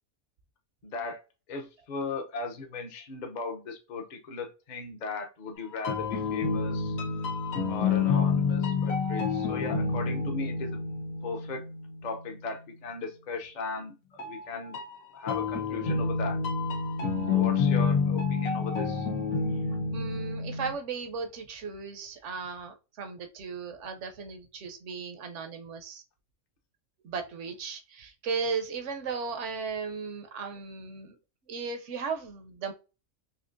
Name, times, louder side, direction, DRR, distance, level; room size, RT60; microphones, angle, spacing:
voice 1, 0.8-1.2 1.5-7.0 7.7-10.8 11.2-11.6 12.0-14.8 15.1-16.4 17.3-19.1, left 3 dB, 45° left, 4 dB, 0.7 m, -37 dB
sound 1, 5.6-12.3 14.2-20.7, left 5 dB, 85° left, 1.4 m, -29 dB
voice 2, 19.9-26.0 27.0-31.2 31.5-32.7, right 5 dB, 65° right, 6 dB, 1.0 m, -36 dB
4.4 x 2.8 x 2.5 m, 0.31 s
omnidirectional pair, 1.4 m